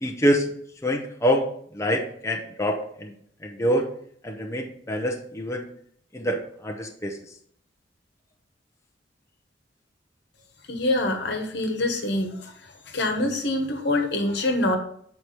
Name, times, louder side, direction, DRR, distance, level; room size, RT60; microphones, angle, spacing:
voice 1, 0.0-0.5 0.8-1.5 1.7-3.1 3.4-3.8 4.2-5.7 6.1-7.2, equal, 15° left, 2 dB, 0.7 m, -25 dB
voice 2, 10.7-12.5 12.9-14.8, left 1 dB, 65° left, 4 dB, 1.2 m, -25 dB
6.7 x 4.7 x 4.3 m, 0.64 s
head